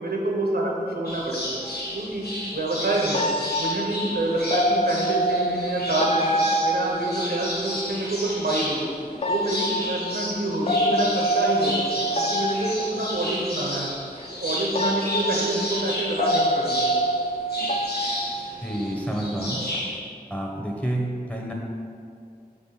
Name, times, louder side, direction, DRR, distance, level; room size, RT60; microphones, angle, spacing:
voice 1, 0.0-1.6 1.9-3.3 3.6-6.3 6.6-8.9 9.3-11.9 12.2-14.0 14.3-16.9, right 1 dB, 80° right, -1 dB, 1.0 m, -27 dB
sound 1, 1.0-20.0, left 1 dB, 85° left, 1.6 m, -32 dB
sound 2, 1.6-1.8 3.1-7.9 9.1-13.4 14.2-14.3 14.7-19.1 19.5-19.8, right 1 dB, 40° left, 0.4 m, -26 dB
voice 2, 18.6-19.6 20.3-21.5, right 1 dB, 10° left, -1 dB, 1.1 m, -28 dB
5.4 x 3.9 x 5.8 m, 2.3 s
wide cardioid pair, 50°, 16 cm